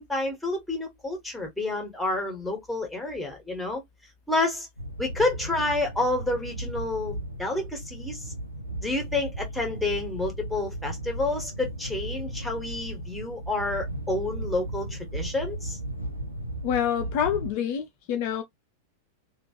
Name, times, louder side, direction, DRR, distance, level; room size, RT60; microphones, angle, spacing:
voice 1, 0.0-3.8 4.3-4.7 5.0-8.3 8.8-15.8, left 2 dB, 5° left, 1.4 m, -29 dB
sound 1, 4.8-17.5, right 1 dB, 85° right, 0.6 m, -36 dB
voice 2, 16.6-18.4, left 9 dB, 45° left, 0.4 m, -27 dB
2.9 x 2.4 x 2.9 m
figure-of-eight pair, 90°, 0 cm